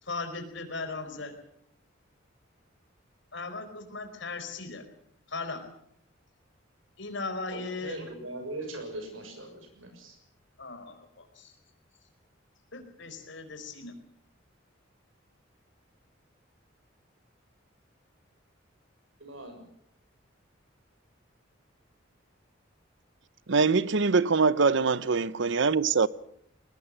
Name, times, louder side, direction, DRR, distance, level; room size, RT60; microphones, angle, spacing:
voice 1, 0.0-1.3 3.3-4.8 5.3-5.6 7.0-8.0 10.6-11.5 12.7-13.9, left 3 dB, 65° left, 4.7 m, -38 dB
voice 2, 7.5-10.2 19.2-19.6, right 2 dB, 90° right, 6.9 m, -40 dB
voice 3, 23.5-26.1, right 4 dB, 65° right, 0.8 m, -23 dB
21.5 x 20.0 x 7.6 m
head